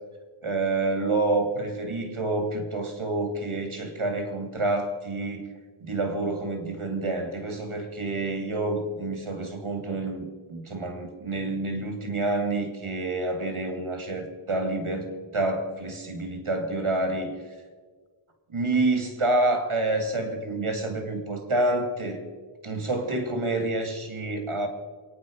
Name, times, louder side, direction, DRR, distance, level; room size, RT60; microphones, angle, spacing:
voice 1, 0.4-5.5 5.8-17.3 18.5-22.2 22.6-24.7, right 2 dB, 80° right, 5 dB, 2.6 m, -28 dB
27.5 x 9.7 x 5.3 m, 1.5 s
wide cardioid pair, 50°, 49 cm